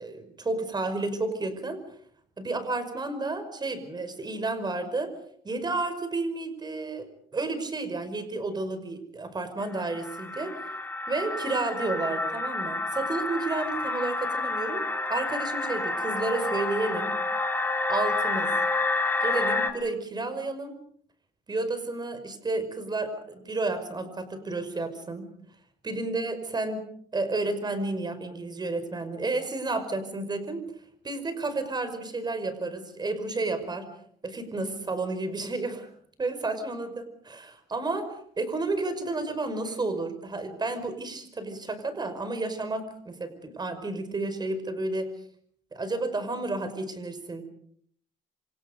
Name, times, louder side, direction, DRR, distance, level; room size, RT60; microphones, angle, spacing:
voice 1, 0.0-1.8 2.4-5.1 5.4-10.5 11.1-17.2 17.9-18.5 19.2-20.8 21.5-25.3 25.8-26.8 27.1-30.7 31.0-33.9 34.2-35.9 36.2-45.1 45.7-47.4, right 2 dB, 25° right, 10 dB, 5.4 m, -31 dB
sound 1, 9.6-19.7, left 2 dB, 10° left, 3.6 m, -29 dB
27.5 x 26.5 x 5.3 m, 0.64 s
cardioid pair, 110°, 17 cm